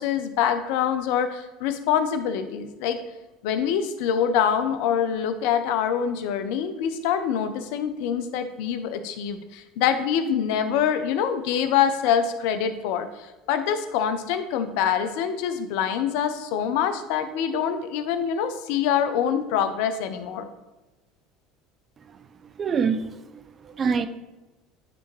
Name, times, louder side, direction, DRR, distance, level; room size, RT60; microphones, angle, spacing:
voice 1, 0.0-3.0 3.4-20.5, left 8 dB, 70° left, 9 dB, 0.5 m, -25 dB
voice 2, 22.6-24.1, right 6 dB, 35° right, 11 dB, 0.5 m, -26 dB
9.3 x 3.4 x 3.2 m, 1.1 s
hypercardioid pair, 75°, 0 cm